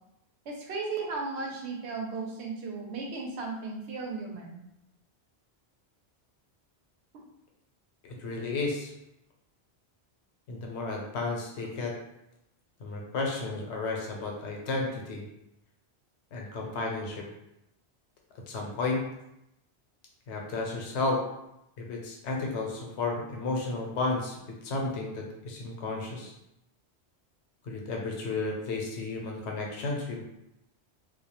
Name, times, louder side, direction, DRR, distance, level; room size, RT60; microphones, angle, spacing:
voice 1, 0.5-4.6, right 4 dB, 85° right, 0 dB, 0.9 m, -35 dB
voice 2, 8.0-8.9 10.5-11.9 12.8-15.2 16.3-17.2 18.5-19.0 20.3-21.2 21.8-26.3 27.6-30.2, left 3 dB, 90° left, 0 dB, 0.9 m, -32 dB
2.2 x 2.1 x 2.8 m, 0.84 s
omnidirectional pair, 1.1 m